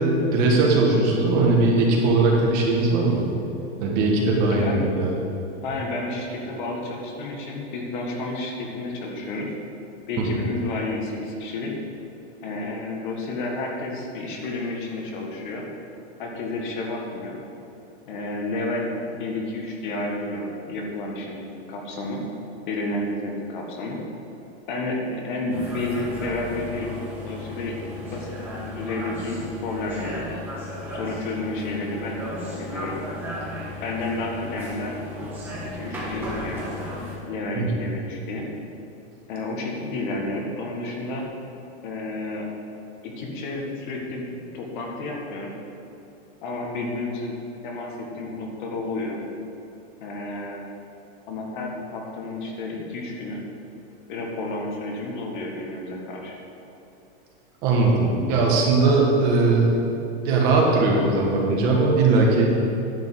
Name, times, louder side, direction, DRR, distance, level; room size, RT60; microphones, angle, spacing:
voice 1, 0.0-3.2 3.8-5.1 10.2-10.4 37.6-37.7 57.6-59.8 60.2-62.5, right 3 dB, 30° right, -1 dB, 1.4 m, -19 dB
sound 1, 1.9-2.5 2.8-5.6, left 1 dB, 35° left, 1.3 m, -38 dB
voice 2, 4.5-4.8 5.6-9.5 10.1-11.7 12.4-15.7 16.2-17.4 18.0-21.4 21.7-22.2 22.7-24.0 24.7-26.9 27.2-28.3 28.6-30.4 30.9-32.2 32.4-33.0 33.8-35.0 35.7-36.7 37.3-38.5 39.3-41.2 41.8-42.5 43.0-44.3 44.5-45.5 46.4-47.3 47.6-49.2 50.0-50.6 51.3-53.4 54.1-56.4, left 2 dB, 50° left, 0 dB, 1.7 m, -31 dB
sound 2, 25.5-37.2, left 1 dB, 5° right, 1.4 m, -35 dB
10.5 x 5.2 x 7.7 m, 2.8 s
supercardioid pair, 175°, 32 cm